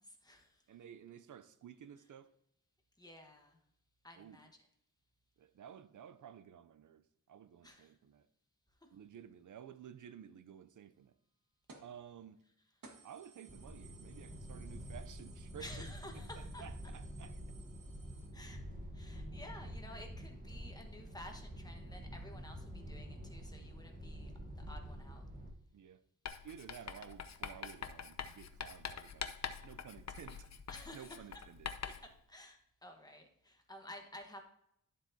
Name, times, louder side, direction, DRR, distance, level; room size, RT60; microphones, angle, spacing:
voice 1, 0.0-0.7 3.0-3.6 4.0-4.7 7.6-7.9 8.8-8.9 15.6-16.6 18.3-18.6 18.9-25.3 30.7-31.3 31.8-34.4, left 1 dB, 10° left, 1.2 m, -53 dB
voice 2, 0.7-2.3 4.2-4.4 5.4-8.3 8.9-11.1 11.8-12.4 13.0-15.7 16.6-17.4 25.7-26.0 26.4-29.4 29.6-30.5 30.9-31.7, right 9 dB, 70° right, 0.5 m, -53 dB
sound 1, 11.7-12.0 12.4-12.5 12.8-18.3, right 4 dB, 85° right, 1.6 m, -61 dB
sound 2, 13.5-25.5, equal, 25° right, 1.3 m, -47 dB
Writing, 26.3-32.1, left 7 dB, 55° left, 0.7 m, -45 dB
11.5 x 7.3 x 2.7 m
wide cardioid pair, 125°, 32 cm